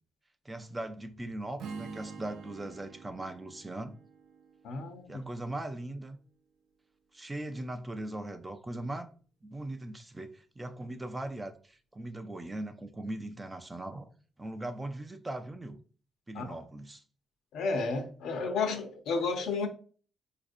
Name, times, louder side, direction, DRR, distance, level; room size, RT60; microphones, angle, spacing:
voice 1, 0.4-4.0 5.1-6.2 7.1-9.1 9.4-14.1 14.4-15.8 16.3-17.0, right 1 dB, 15° right, 0.4 m, -39 dB
Strum, 1.6-5.8, right 5 dB, 80° right, 0.5 m, -47 dB
voice 2, 4.6-5.3 16.3-16.6 17.5-19.7, left 4 dB, 75° left, 0.6 m, -32 dB
4.0 x 2.5 x 2.5 m
cardioid pair, 100°, 0 cm